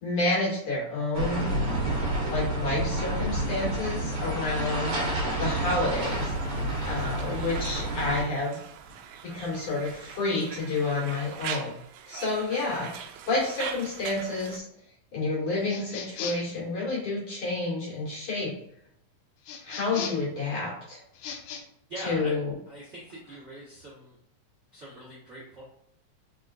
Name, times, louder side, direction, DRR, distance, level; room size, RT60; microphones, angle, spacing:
voice 1, 0.0-1.5 2.2-4.9 5.4-6.6 6.8-8.6 9.2-11.7 12.1-14.6 15.1-18.5 19.6-21.0 22.0-22.5, left 2 dB, 50° left, -6 dB, 2.5 m, -29 dB
sound 1, 1.1-8.2, right 1 dB, 55° right, 1.7 m, -29 dB
Conversation, 5.9-14.6, right 8 dB, 80° right, 1.9 m, -42 dB
sound 2, 15.7-16.6 19.4-20.3 21.1-21.6, left 7 dB, 80° left, 1.9 m, -37 dB
voice 2, 21.9-22.3 22.7-24.2 24.7-25.6, right 1 dB, 40° right, -8 dB, 1.0 m, -42 dB
4.5 x 4.2 x 2.5 m, 0.74 s
omnidirectional pair, 3.5 m